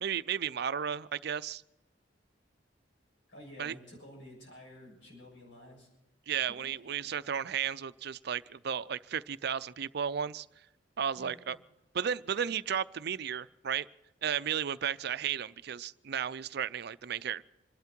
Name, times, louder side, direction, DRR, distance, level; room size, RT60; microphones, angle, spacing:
voice 1, 0.0-1.6 3.6-3.7 6.3-10.5 11.0-11.6 11.9-13.9 14.2-17.4, right 8 dB, 60° right, 16 dB, 0.5 m, -34 dB
voice 2, 3.3-5.9 6.5-7.2 11.2-11.6, left 1 dB, 90° left, -2 dB, 7.0 m, -52 dB
26.5 x 12.0 x 4.5 m, 0.92 s
head